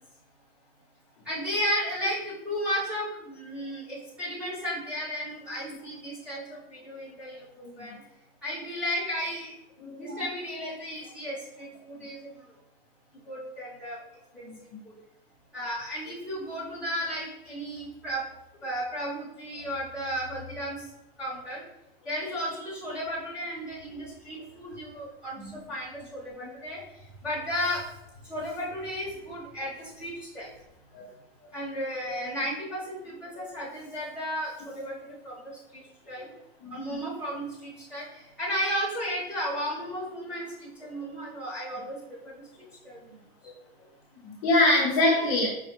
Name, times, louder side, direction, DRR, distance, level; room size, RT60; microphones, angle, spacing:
voice 1, 1.2-7.9 8.4-9.5 10.0-12.3 13.2-14.0 14.3-14.5 15.5-18.2 18.6-20.8 21.2-21.6 22.0-25.4 25.7-26.8 27.2-27.8 28.3-30.5 31.5-34.9 35.2-35.5 36.1-36.3 36.7-38.0 38.4-42.0 42.8-43.0, equal, 5° right, -10 dB, 1.4 m, -34 dB
voice 2, 9.8-10.2 14.4-14.6 25.4-25.5 30.9-31.1 33.3-33.4 36.6-37.0 44.2-45.5, left 1 dB, 35° left, -4 dB, 0.8 m, -25 dB
5.0 x 2.3 x 3.3 m, 0.87 s
supercardioid pair, 160°, 31 cm